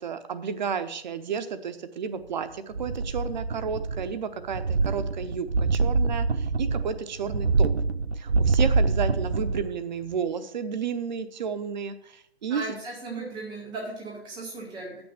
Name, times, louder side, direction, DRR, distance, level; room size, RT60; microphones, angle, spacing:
voice 1, 0.0-7.7 8.2-12.7, right 6 dB, 45° right, 11 dB, 0.8 m, -32 dB
sound 1, 2.7-4.2 4.5-9.8 10.1-10.2, right 3 dB, 80° right, 0.6 m, -25 dB
voice 2, 12.5-15.0, right 3 dB, ahead, -18 dB, 0.3 m, -36 dB
9.3 x 6.2 x 6.1 m, 0.74 s
figure-of-eight pair, 125°, 31 cm